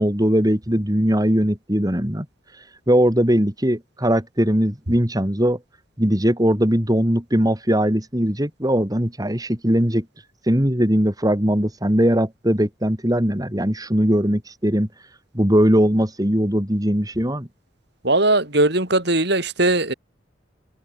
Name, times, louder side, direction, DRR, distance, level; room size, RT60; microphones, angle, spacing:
voice 1, 0.0-2.3 2.6-5.6 6.0-10.1 10.4-14.9 15.3-17.5, equal, 20° right, 4.3 m, -20 dB
voice 2, 18.0-19.9, right 2 dB, 60° right, 7.1 m, -19 dB
head